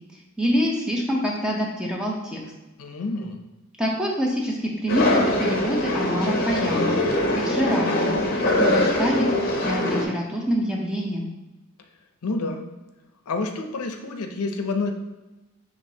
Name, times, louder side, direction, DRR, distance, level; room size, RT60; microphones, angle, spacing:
voice 1, 0.4-2.4 3.8-7.0 7.3-8.1 8.4-9.3 9.6-11.3, equal, 5° right, -2 dB, 0.6 m, -26 dB
voice 2, 2.8-3.4 12.2-12.6 13.3-14.9, left 3 dB, 85° left, 5 dB, 0.5 m, -28 dB
sound 1, 4.9-10.1, left 1 dB, 45° left, 0.6 m, -23 dB
6.3 x 3.0 x 2.8 m, 1.1 s
head